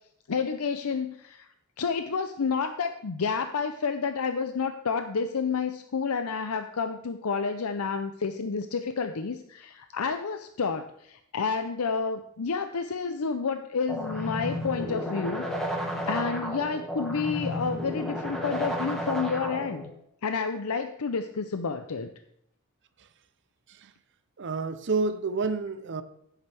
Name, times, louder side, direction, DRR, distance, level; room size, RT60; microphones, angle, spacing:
voice 1, 0.3-1.5 1.8-15.5 15.7-19.9 20.2-22.1, left 5 dB, 90° left, 0.6 m, -30 dB
sound 1, 13.9-19.9, equal, 5° left, 2.1 m, -32 dB
voice 2, 24.4-26.0, right 4 dB, 55° right, 0.6 m, -29 dB
14.5 x 8.3 x 3.4 m
head